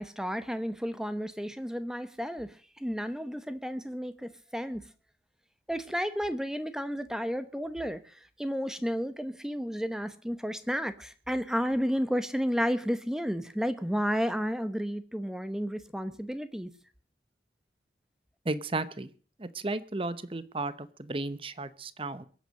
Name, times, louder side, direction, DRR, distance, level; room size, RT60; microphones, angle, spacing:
voice 1, 0.0-4.8 5.7-8.0 8.4-16.7, equal, 5° right, 12 dB, 0.9 m, -32 dB
voice 2, 18.4-19.1 19.4-22.2, right 2 dB, 30° right, 15 dB, 0.8 m, -34 dB
22.5 x 8.3 x 6.5 m, 0.42 s
head